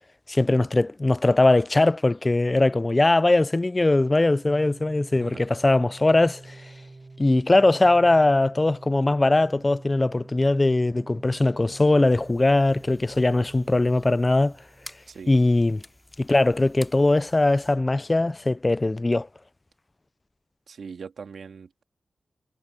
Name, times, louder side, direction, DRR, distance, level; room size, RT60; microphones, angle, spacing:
voice 1, 0.3-6.6 7.2-14.5 15.3-15.8 16.2-19.3, left 2 dB, 30° left, 0.4 m, -20 dB
Organ, 4.2-15.1, right 3 dB, 40° right, 6.5 m, -46 dB
voice 2, 5.1-5.4 15.1-15.3 20.7-21.8, right 6 dB, 90° right, 2.5 m, -41 dB
sound 1, 12.0-17.7, left 1 dB, 15° left, 3.1 m, -50 dB
cardioid pair, 65°, 0 cm